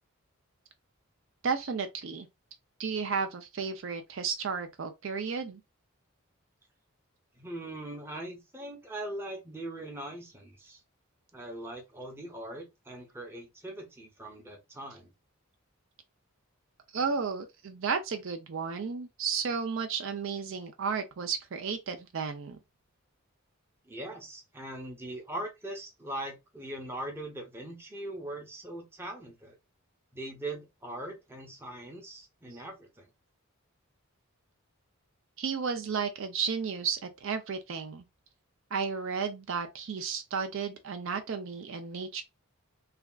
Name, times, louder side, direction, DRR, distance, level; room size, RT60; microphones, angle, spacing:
voice 1, 1.4-2.3 2.8-5.6 16.9-22.6 35.4-38.0 38.7-42.2, right 5 dB, 60° right, 0.4 m, -33 dB
voice 2, 7.4-10.8 11.3-15.1 23.8-29.6 30.1-33.1, right 1 dB, 10° right, 0.7 m, -41 dB
3.3 x 2.3 x 2.3 m
head